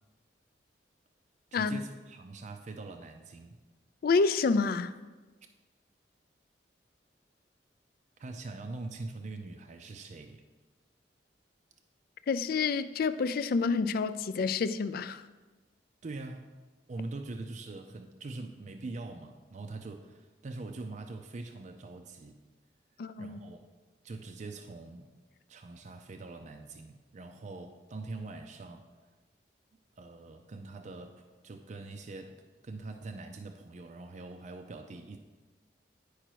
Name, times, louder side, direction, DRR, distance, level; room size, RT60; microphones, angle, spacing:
voice 1, 1.5-3.6 8.2-10.4 16.0-16.5 16.9-22.4 23.2-23.7 24.0-25.1 25.5-28.9 30.0-35.2, right 3 dB, 40° right, 5 dB, 0.4 m, -43 dB
voice 2, 4.0-4.9 12.3-15.2 23.0-23.4, left 4 dB, 55° left, 14 dB, 0.3 m, -28 dB
10.0 x 5.0 x 4.6 m, 1.3 s
head